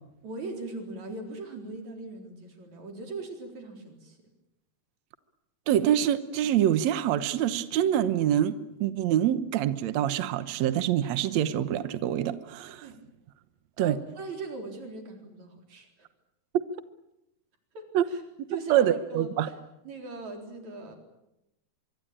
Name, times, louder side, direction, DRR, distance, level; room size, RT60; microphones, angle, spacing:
voice 1, 0.2-4.2 12.8-13.0 13.8-16.1 17.7-18.2 18.5-19.6 19.8-21.0, right 3 dB, 45° right, 4 dB, 5.2 m, -40 dB
voice 2, 5.7-12.8 13.8-14.0 16.5-16.6 17.9-18.0 18.4-19.5, right 11 dB, 80° right, 12 dB, 1.5 m, -25 dB
24.5 x 24.0 x 8.9 m, 0.89 s
omnidirectional pair, 4.7 m